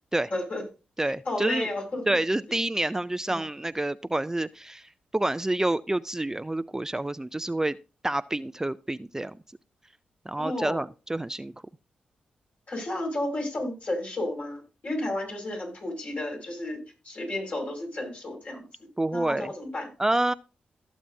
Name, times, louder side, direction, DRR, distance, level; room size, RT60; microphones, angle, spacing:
voice 1, 0.3-0.6 1.3-2.0 3.3-3.4 10.4-10.8 12.7-18.7 19.1-19.9, left 1 dB, 55° left, 0 dB, 5.6 m, -32 dB
voice 2, 1.0-1.7 2.1-7.8 8.0-9.4 10.3-11.5 19.0-19.5 20.0-20.3, right 1 dB, 15° right, 14 dB, 0.4 m, -28 dB
15.5 x 7.3 x 2.7 m, 0.32 s
cardioid pair, 50°, 3 cm